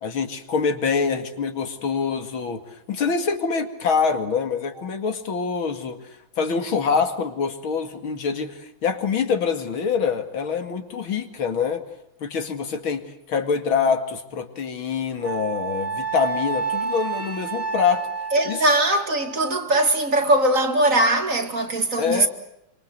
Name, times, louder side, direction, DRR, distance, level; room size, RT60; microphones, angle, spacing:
voice 1, 0.0-2.6 2.9-6.0 6.4-11.8 12.2-13.0 13.3-18.1 18.5-18.6 22.0-22.3, left 5 dB, 80° left, 3.0 m, -25 dB
Wind instrument woodwind instrument, 15.2-19.6, right 5 dB, 25° left, 3.1 m, -30 dB
voice 2, 18.3-22.3, right 1 dB, 40° right, 2.4 m, -20 dB
27.0 x 25.5 x 8.0 m
omnidirectional pair, 2.2 m